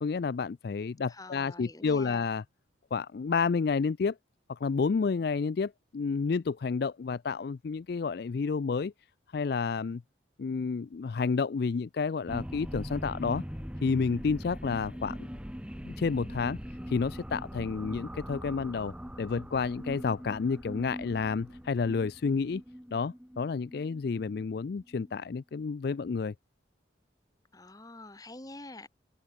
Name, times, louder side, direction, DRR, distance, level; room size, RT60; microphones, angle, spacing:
voice 1, 0.0-2.4 2.9-4.2 4.5-8.9 9.3-10.0 10.4-13.4 13.8-15.3 15.8-16.6 16.9-22.6 22.9-26.3, left 5 dB, 55° left, 0.4 m, -30 dB
voice 2, 1.1-2.3 27.5-28.9, left 2 dB, 20° left, 1.6 m, -46 dB
sound 1, 12.3-25.1, equal, 5° right, 2.6 m, -42 dB
head